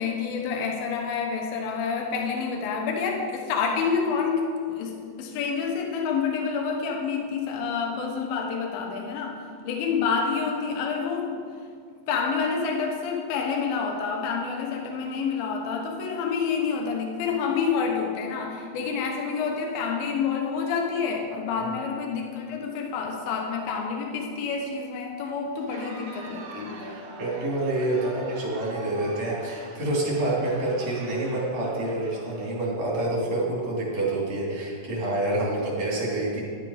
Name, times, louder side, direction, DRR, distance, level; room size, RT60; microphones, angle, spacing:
voice 1, 0.0-11.4 12.1-27.0, left 5 dB, 80° left, 1 dB, 2.7 m, -28 dB
Crowd, 25.5-33.0, right 4 dB, 85° right, 3.0 m, -44 dB
voice 2, 27.2-36.4, right 2 dB, 50° right, -6 dB, 4.1 m, -27 dB
12.5 x 8.9 x 5.0 m, 2.2 s
omnidirectional pair, 4.2 m